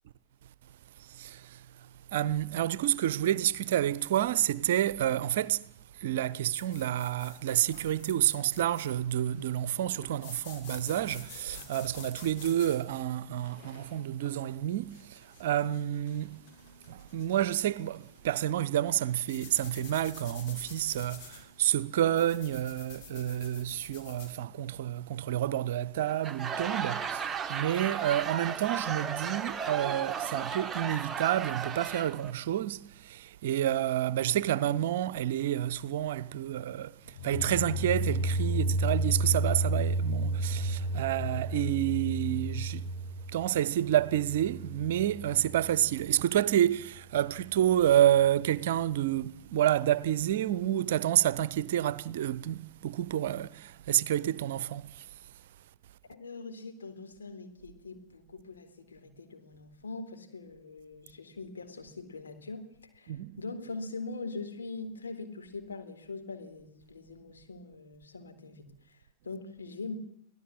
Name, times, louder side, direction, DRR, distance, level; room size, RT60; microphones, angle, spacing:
voice 1, 1.1-1.6 2.1-5.7 6.0-16.4 16.9-37.0 37.2-42.9 43.3-55.1 63.1-63.4, right 12 dB, 55° right, 0.9 m, -29 dB
sound 1, 6.5-24.3, left 5 dB, 45° left, 6.6 m, -50 dB
Laughter / Crowd, 26.1-32.3, right 7 dB, 20° right, 1.5 m, -35 dB
sound 2, 37.2-46.0, right 1 dB, 30° left, 5.0 m, -32 dB
voice 2, 56.1-62.6 62.9-70.0, left 3 dB, 70° left, 3.9 m, -42 dB
25.5 x 17.5 x 7.5 m
figure-of-eight pair, 90°, 0 cm